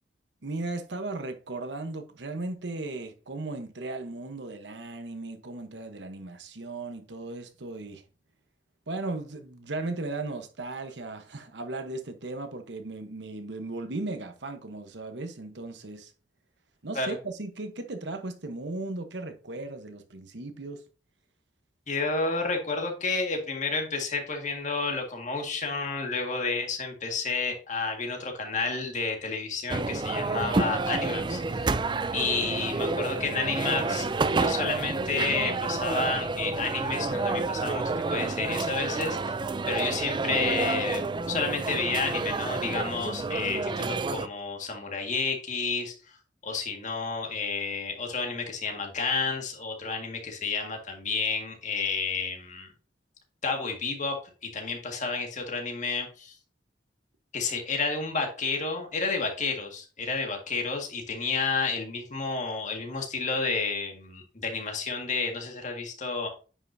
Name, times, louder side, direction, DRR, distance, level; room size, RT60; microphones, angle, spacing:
voice 1, 0.4-8.0 8.9-16.1 16.8-20.8, right 2 dB, 70° right, 1.1 m, -36 dB
voice 2, 21.9-31.6 32.1-39.4 39.7-41.0 41.3-46.1 46.4-52.7 53.4-54.1 54.4-56.4 57.3-66.3, left 4 dB, 45° left, 1.9 m, -31 dB
sound 1, 29.7-44.3, right 3 dB, 25° right, 0.4 m, -29 dB
9.6 x 5.7 x 2.7 m
head